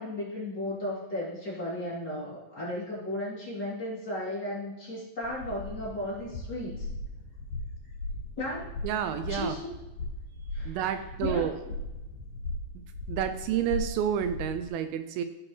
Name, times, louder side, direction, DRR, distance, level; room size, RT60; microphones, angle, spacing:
voice 1, 0.0-6.9 8.4-8.7 9.3-9.7 10.5-10.9 11.2-11.4, left 1 dB, 30° left, -9 dB, 3.1 m, -35 dB
sound 1, 5.2-14.7, left 1 dB, 65° left, 3.3 m, -38 dB
voice 2, 8.8-9.6 10.7-11.5 13.1-15.2, right 9 dB, 80° right, 9 dB, 2.3 m, -29 dB
16.0 x 6.1 x 3.3 m, 1.0 s
omnidirectional pair, 4.3 m